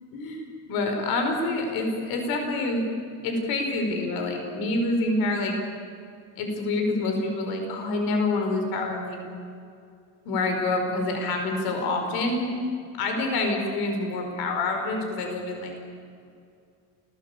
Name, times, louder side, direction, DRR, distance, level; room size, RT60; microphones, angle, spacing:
voice 1, 0.1-0.4 0.7-2.8 3.2-5.5 6.4-9.2 10.3-12.5 13.0-15.8, left 2 dB, 75° left, 3 dB, 5.3 m, -27 dB
28.5 x 18.5 x 8.5 m, 2.4 s
cardioid pair, 165°, 36 cm